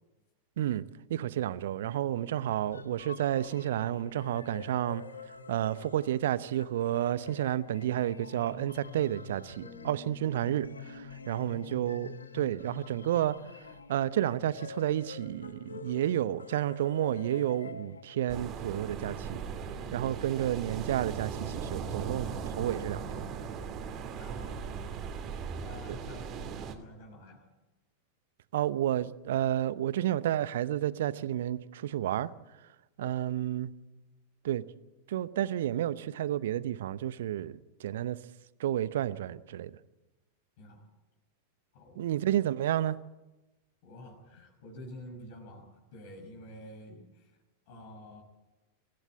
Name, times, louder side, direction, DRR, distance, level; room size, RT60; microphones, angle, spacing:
voice 1, 1.1-5.0 5.5-13.4 13.9-19.4 19.9-23.3 28.5-32.3 33.0-33.7 34.4-34.6 35.1-38.2 38.6-39.7 42.0-43.0, right 12 dB, 60° right, 0.8 m, -31 dB
sound 1, 2.4-18.4, left 5 dB, 75° left, 1.2 m, -47 dB
sound 2, 9.6-13.5 14.0-14.3, left 3 dB, 15° left, 2.7 m, -57 dB
voice 2, 11.4-11.8 24.1-25.2 25.6-27.4 40.6-40.9 41.7-42.1 43.8-47.4 47.7-48.2, equal, 50° left, 5.5 m, -49 dB
sound 3, 18.3-26.8, right 6 dB, 35° right, 2.6 m, -38 dB
24.0 x 15.5 x 8.6 m
figure-of-eight pair, 90°, 0 cm